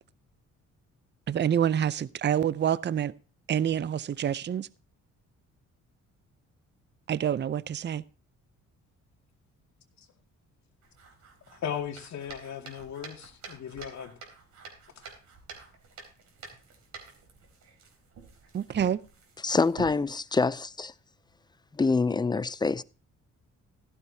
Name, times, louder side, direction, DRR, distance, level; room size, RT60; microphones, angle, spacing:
voice 1, 1.3-3.1 3.5-4.7 7.1-8.0 18.5-19.0, right 9 dB, 35° right, 0.6 m, -27 dB
sound 1, 10.8-20.1, right 5 dB, 65° right, 4.1 m, -48 dB
voice 2, 11.5-14.1, left 8 dB, 65° left, 2.3 m, -37 dB
voice 3, 19.4-20.9 21.7-22.8, left 4 dB, 15° left, 0.4 m, -26 dB
15.0 x 12.0 x 2.8 m
cardioid pair, 90°, 30 cm